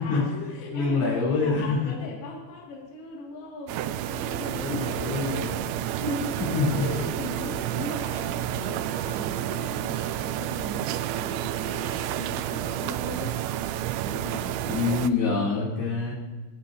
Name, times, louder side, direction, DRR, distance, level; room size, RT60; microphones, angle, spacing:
voice 1, 0.0-5.1 6.0-6.5 6.8-13.4 14.0-14.6, left 2 dB, 60° left, -4 dB, 4.1 m, -38 dB
voice 2, 0.7-1.9 4.6-5.6 6.0-6.2 6.5-6.9 14.6-16.1, left 4 dB, 90° left, -7 dB, 6.5 m, -26 dB
sound 1, 3.7-15.1, right 12 dB, 85° right, 2.8 m, -30 dB
26.0 x 9.6 x 2.8 m, 1.3 s
omnidirectional pair, 5.2 m